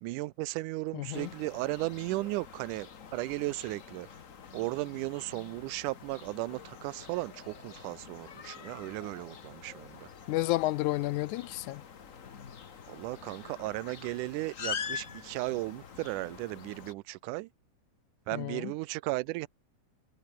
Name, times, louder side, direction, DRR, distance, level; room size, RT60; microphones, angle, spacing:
voice 1, 0.0-4.1 4.5-10.1 12.9-17.5 18.3-19.5, right 20 dB, 80° right, 2.1 m, -35 dB
voice 2, 0.9-1.3 10.3-11.8 18.3-18.7, left 17 dB, 80° left, 2.0 m, -31 dB
sound 1, 1.1-16.9, left 6 dB, 65° left, 0.7 m, -45 dB
omnidirectional pair, 3.6 m